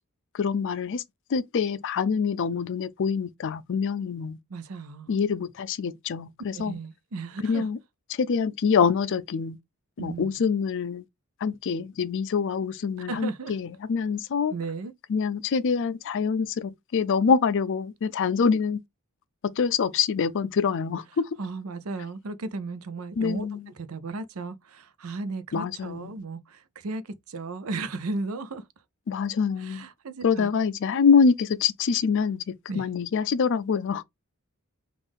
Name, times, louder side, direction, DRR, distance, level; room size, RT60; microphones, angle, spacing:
voice 1, 0.4-1.0 1.3-4.4 5.1-6.7 7.4-7.8 8.2-9.6 10.0-11.0 11.4-14.5 15.1-18.8 19.4-21.3 23.2-23.6 25.5-26.1 29.1-29.8 30.2-34.0, left 6 dB, 60° left, 0.4 m, -25 dB
voice 2, 4.5-5.1 6.5-7.7 10.0-10.4 13.0-13.6 14.5-14.9 21.4-28.6 29.6-30.5 32.7-32.9, right 3 dB, 75° right, 0.6 m, -35 dB
5.3 x 2.5 x 3.4 m
head